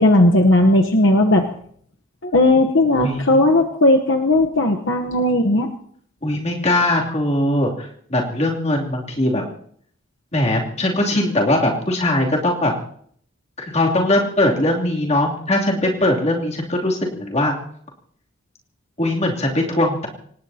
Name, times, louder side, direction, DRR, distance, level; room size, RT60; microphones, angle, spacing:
voice 1, 0.0-1.5 2.2-5.7, left 1 dB, 65° left, 3 dB, 1.0 m, -16 dB
voice 2, 3.0-3.5 6.2-9.4 10.3-12.7 13.6-17.5 19.0-20.1, left 1 dB, 30° left, -1 dB, 2.9 m, -20 dB
26.5 x 18.5 x 2.9 m, 0.62 s
head